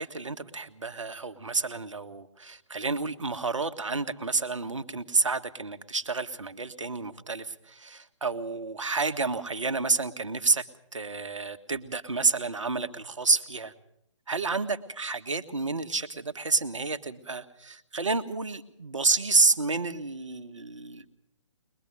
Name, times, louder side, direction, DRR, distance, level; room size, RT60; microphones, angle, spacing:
voice 1, 0.0-10.7 10.9-13.7 14.3-21.1, right 3 dB, 75° right, 9 dB, 1.8 m, -29 dB
22.5 x 21.0 x 6.5 m, 0.72 s
figure-of-eight pair, 135°, 16 cm